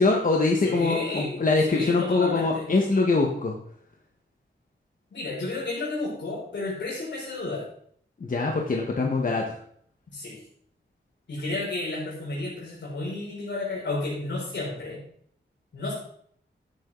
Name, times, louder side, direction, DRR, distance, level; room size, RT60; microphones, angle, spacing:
voice 1, 0.0-3.6 8.2-9.5, left 3 dB, 45° left, 0 dB, 1.6 m, -23 dB
voice 2, 0.6-2.7 5.1-7.6 10.1-10.4 11.3-15.0 15.7-15.9, left 2 dB, 70° left, -7 dB, 6.1 m, -32 dB
14.5 x 10.5 x 4.0 m, 0.63 s
wide cardioid pair, 145°, 19 cm